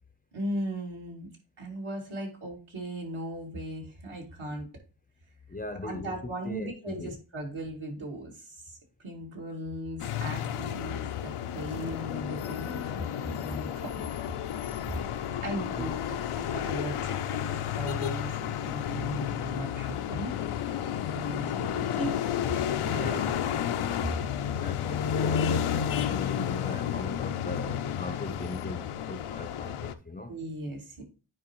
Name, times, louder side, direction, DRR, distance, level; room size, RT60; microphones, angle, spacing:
voice 1, 0.3-1.3 1.6-4.7 5.8-13.9 15.4-20.3 21.0-22.2 22.8-23.9 30.3-31.0, right 1 dB, 70° right, 2.7 m, -38 dB
voice 2, 5.5-6.2 6.4-7.1 15.7-15.9 23.0-23.4 24.5-30.3, left 2 dB, 20° left, 0.6 m, -38 dB
sound 1, 10.0-29.9, left 9 dB, 90° left, 0.7 m, -31 dB
9.5 x 4.6 x 3.0 m
cardioid pair, 75°, 49 cm